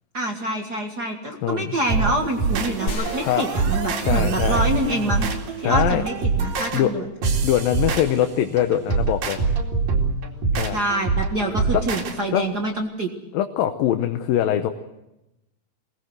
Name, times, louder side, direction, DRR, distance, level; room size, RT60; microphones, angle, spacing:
voice 1, 0.1-5.3 5.6-7.1 10.7-13.1, right 1 dB, 40° right, 2 dB, 1.6 m, -26 dB
voice 2, 1.4-1.8 3.2-3.5 4.0-4.6 5.6-6.0 6.7-6.9 7.4-9.4 10.5-10.8 12.3-12.4 13.3-14.7, left 11 dB, 85° left, 7 dB, 2.7 m, -22 dB
sound 1, 1.9-12.2, right 4 dB, 75° right, 4.2 m, -24 dB
sound 2, 2.9-5.2, left 1 dB, 60° left, 4.2 m, -34 dB
22.5 x 19.0 x 8.0 m, 0.93 s
omnidirectional pair, 4.0 m